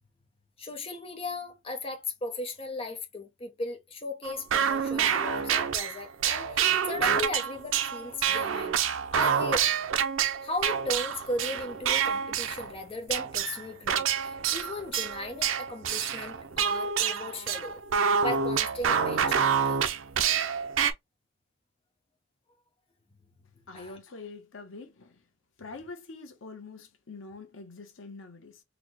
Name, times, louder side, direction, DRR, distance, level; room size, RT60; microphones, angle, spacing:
voice 1, 0.6-8.8 9.1-9.7 10.4-17.8 18.2-19.8 23.7-24.0, left 2 dB, 30° left, 0.7 m, -37 dB
sound 1, 4.2-12.8 13.1-20.9, right 7 dB, 85° right, 0.5 m, -27 dB
voice 2, 23.7-25.2 25.6-28.6, left 3 dB, 90° left, 0.9 m, -45 dB
4.0 x 2.1 x 3.0 m
head